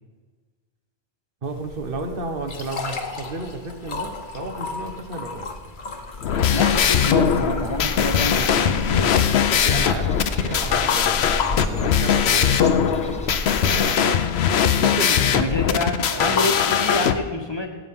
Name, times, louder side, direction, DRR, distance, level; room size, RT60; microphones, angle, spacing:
sound 1, 1.4-15.7, left 3 dB, 50° left, 1.1 m, -36 dB
voice 1, 1.4-5.5 9.5-13.3 13.5-14.2 14.8-15.5 15.8-16.4, right 3 dB, 60° right, 5 dB, 1.3 m, -33 dB
sound 2, 6.2-17.1, left 8 dB, 85° left, 0.9 m, -20 dB
sound 3, 6.3-13.8, left 1 dB, 10° left, 0.7 m, -32 dB
voice 2, 6.5-9.3 15.3-17.7, left 1 dB, 25° left, 2 dB, 1.3 m, -27 dB
16.5 x 8.6 x 3.6 m, 1.4 s
omnidirectional pair, 1.1 m